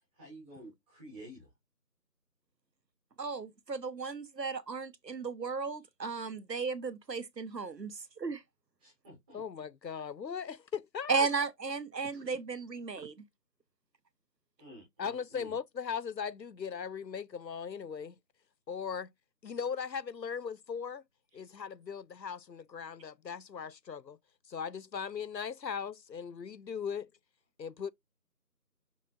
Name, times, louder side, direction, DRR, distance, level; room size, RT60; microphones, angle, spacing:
voice 1, 0.1-1.5 8.8-9.4 14.6-15.5, equal, 5° right, 2.9 m, -51 dB
voice 2, 3.2-8.4 11.1-13.2, right 4 dB, 80° right, 1.1 m, -35 dB
voice 3, 9.3-11.3 15.0-18.2 18.7-19.1 19.4-21.0 21.3-24.2 24.5-27.1 27.6-27.9, left 6 dB, 90° left, 0.7 m, -38 dB
6.6 x 6.3 x 2.4 m
figure-of-eight pair, 165°, 49 cm